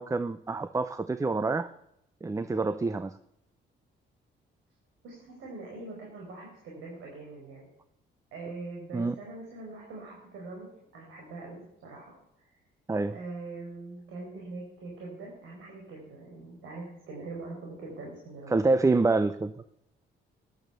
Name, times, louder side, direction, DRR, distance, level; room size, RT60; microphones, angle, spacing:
voice 1, 0.0-1.7 2.2-3.2 8.9-9.1 12.9-13.1 18.5-19.5, right 3 dB, 15° right, 13 dB, 0.6 m, -27 dB
voice 2, 5.0-7.7 8.3-12.1 12.4-12.5 13.1-18.6, right 3 dB, 85° right, -2 dB, 4.8 m, -43 dB
14.0 x 10.5 x 6.8 m, 0.81 s
cardioid pair, 90°, 20 cm